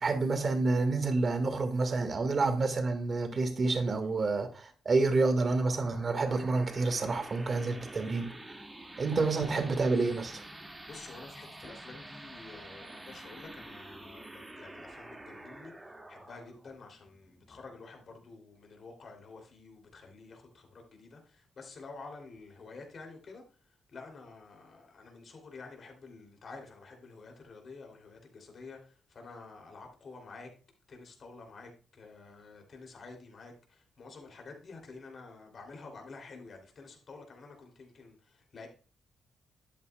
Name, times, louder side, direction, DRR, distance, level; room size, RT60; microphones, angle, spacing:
voice 1, 0.0-8.3 9.0-10.4, right 3 dB, 50° right, 1.7 m, -28 dB
sound 1, 5.1-18.2, right 1 dB, 20° right, 2.0 m, -48 dB
voice 2, 10.8-15.7 16.1-23.4 23.9-30.5 30.9-38.7, left 3 dB, 55° left, 2.9 m, -49 dB
11.5 x 8.2 x 2.3 m
supercardioid pair, 50°, 0 cm